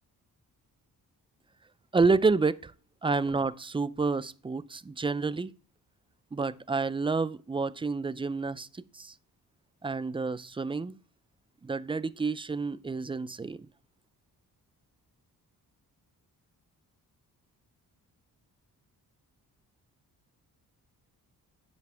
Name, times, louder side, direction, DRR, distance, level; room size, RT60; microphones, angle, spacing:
voice 1, 1.9-2.7 3.0-5.5 6.3-9.1 9.8-11.0 11.6-13.7, right 4 dB, 15° right, 0.3 m, -29 dB
9.2 x 7.6 x 3.3 m
cardioid pair, 105°, 38 cm